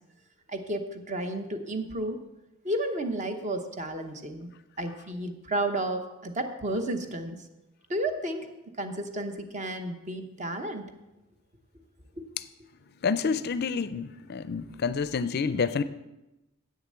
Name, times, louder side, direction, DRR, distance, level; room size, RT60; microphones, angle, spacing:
voice 1, 0.5-2.2 2.6-4.5 4.8-7.4 7.9-8.5 8.8-10.8 12.2-12.3, right 1 dB, 35° right, 7 dB, 0.9 m, -32 dB
voice 2, 13.0-15.8, left 5 dB, 50° left, 14 dB, 0.4 m, -28 dB
8.5 x 6.8 x 7.6 m, 0.98 s
head